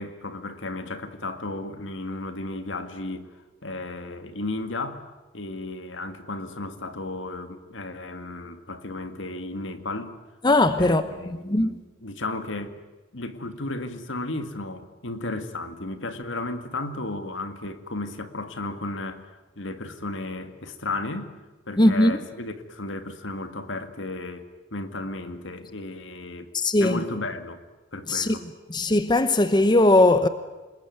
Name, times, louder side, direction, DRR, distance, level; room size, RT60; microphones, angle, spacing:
voice 1, 0.0-3.3 3.6-5.0 5.3-10.2 10.8-12.8 13.1-19.2 19.6-21.3 21.7-26.5 26.8-27.6 27.9-28.4, left 2 dB, 70° left, 2.0 m, -34 dB
voice 2, 10.4-11.0 11.4-11.8 21.8-22.2 26.5-27.0 28.1-28.4 28.7-30.3, left 2 dB, 20° left, 0.9 m, -19 dB
27.5 x 21.0 x 9.4 m
head